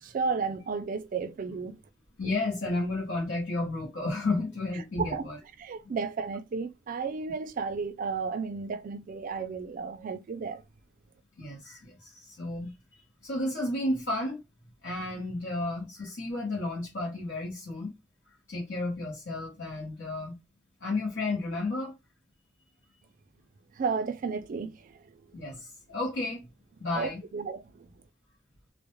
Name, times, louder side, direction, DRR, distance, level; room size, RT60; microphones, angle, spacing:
voice 1, 0.0-1.8 5.0-5.2 5.6-10.6 23.8-25.0 26.9-27.9, right 5 dB, 45° right, 0.3 m, -33 dB
voice 2, 2.2-5.4 11.4-12.7 13.2-14.4 14.8-18.0 18.5-20.4 20.8-21.9 25.3-26.5 26.8-27.2, left 2 dB, 70° left, 0.9 m, -32 dB
2.2 x 2.1 x 2.9 m
head